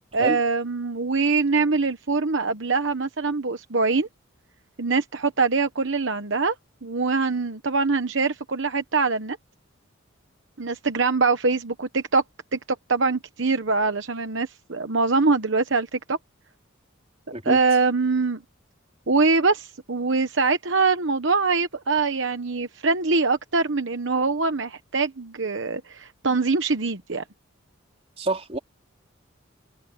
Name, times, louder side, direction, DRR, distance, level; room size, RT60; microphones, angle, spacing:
voice 1, 0.1-4.1 4.8-6.5 6.8-9.4 10.6-12.2 12.5-12.6 12.9-16.2 17.4-18.4 19.1-27.2, right 4 dB, 60° right, 1.1 m, -23 dB
voice 2, 28.2-28.6, right 2 dB, 30° right, 3.9 m, -27 dB
open air
head